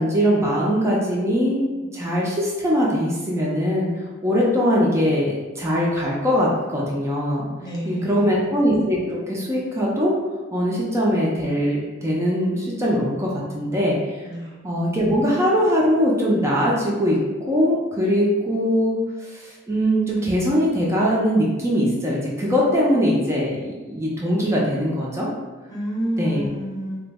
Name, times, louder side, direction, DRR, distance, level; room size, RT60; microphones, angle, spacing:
voice 1, 0.0-1.7 1.9-3.9 4.2-7.5 7.9-10.2 10.5-14.0 14.6-19.0 19.3-25.3 26.2-26.5, equal, 15° right, -4 dB, 0.4 m, -21 dB
voice 2, 7.6-8.5 14.2-14.6 25.7-27.0, equal, 20° left, -5 dB, 0.7 m, -29 dB
3.2 x 2.0 x 3.4 m, 1.2 s
head